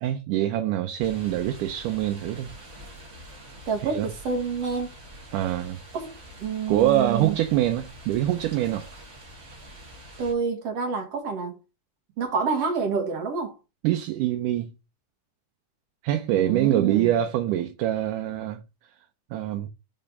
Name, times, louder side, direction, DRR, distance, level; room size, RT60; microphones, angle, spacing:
voice 1, 0.0-2.5 3.8-4.1 5.3-5.8 6.7-8.9 13.8-14.7 16.0-18.6 19.3-19.7, right 12 dB, 80° right, 2.2 m, -24 dB
sound 1, 1.0-10.3, equal, 30° right, 3.2 m, -45 dB
voice 2, 3.7-4.9 5.9-6.1 6.4-7.3 10.2-11.6 12.2-13.5 16.3-17.2, right 5 dB, 55° right, 2.3 m, -28 dB
5.5 x 5.1 x 5.5 m
omnidirectional pair, 3.7 m